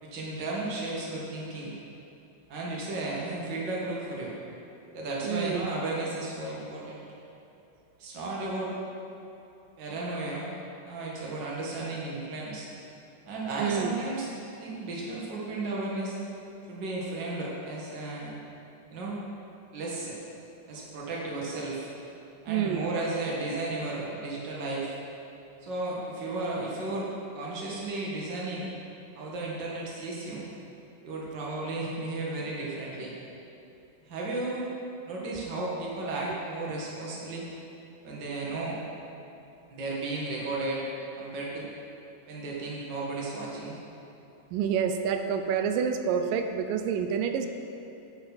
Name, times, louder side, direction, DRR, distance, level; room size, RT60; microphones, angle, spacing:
voice 1, 0.0-1.7 2.5-4.3 4.9-7.0 8.0-8.7 9.8-10.5 10.8-12.7 13.3-14.3 14.6-16.2 16.7-18.3 18.9-19.2 19.7-20.2 20.7-21.9 22.4-24.9 25.6-28.7 29.2-30.5 31.0-33.1 34.0-34.7 35.1-37.5 38.0-38.8 39.7-40.8 41.1-41.7 42.3-43.7, right 2 dB, 40° right, -4 dB, 2.0 m, -34 dB
voice 2, 5.3-5.7 13.6-14.0 22.5-22.9 36.3-36.4 44.5-47.5, right 7 dB, 90° right, 7 dB, 2.3 m, -28 dB
10.5 x 9.0 x 4.1 m, 2.9 s
omnidirectional pair, 3.8 m